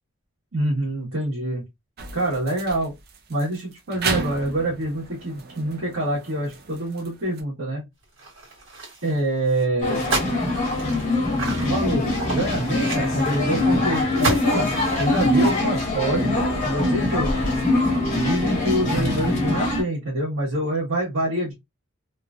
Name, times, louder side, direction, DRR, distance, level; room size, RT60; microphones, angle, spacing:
voice 1, 0.5-1.6 2.1-2.9 3.3-7.8 9.0-10.0 11.6-14.7 15.0-16.3 16.6-17.3 18.1-21.5, right 1 dB, 90° right, 1.3 m, -26 dB
sound 1, 2.0-7.4, right 4 dB, 50° right, 0.5 m, -34 dB
sound 2, 8.2-9.2 9.5-9.6 10.0-13.7 14.2-15.3, right 2 dB, 70° right, 1.7 m, -31 dB
sound 3, 9.8-19.8, left 2 dB, 40° left, 1.2 m, -23 dB
3.0 x 2.3 x 2.4 m
head